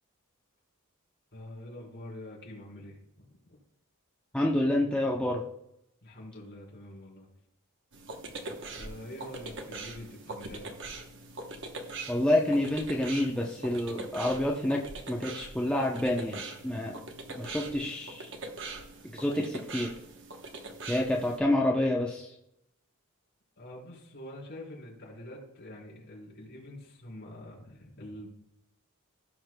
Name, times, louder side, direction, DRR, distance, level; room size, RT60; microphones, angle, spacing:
voice 1, 1.3-3.6 6.0-7.3 8.7-10.8 23.6-28.3, left 1 dB, 50° left, -5 dB, 3.9 m, -45 dB
voice 2, 4.3-5.4 12.1-14.8 15.1-17.0 17.4-18.3 19.1-19.9 20.9-22.3, left 1 dB, 5° left, -2 dB, 0.7 m, -28 dB
sound 1, 7.9-21.4, right 3 dB, 60° right, 1.0 m, -42 dB
16.0 x 6.3 x 2.3 m, 0.80 s
head